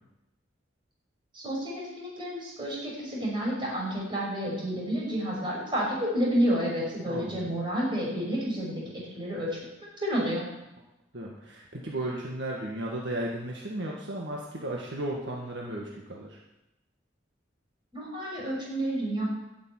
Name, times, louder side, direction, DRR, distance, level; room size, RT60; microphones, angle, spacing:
voice 1, 1.3-8.8 9.2-10.4 17.9-19.3, equal, 25° right, -4 dB, 6.3 m, -30 dB
voice 2, 7.1-7.5 11.1-16.4, right 1 dB, 65° right, -2 dB, 1.9 m, -35 dB
12.5 x 7.4 x 9.5 m, 0.94 s
head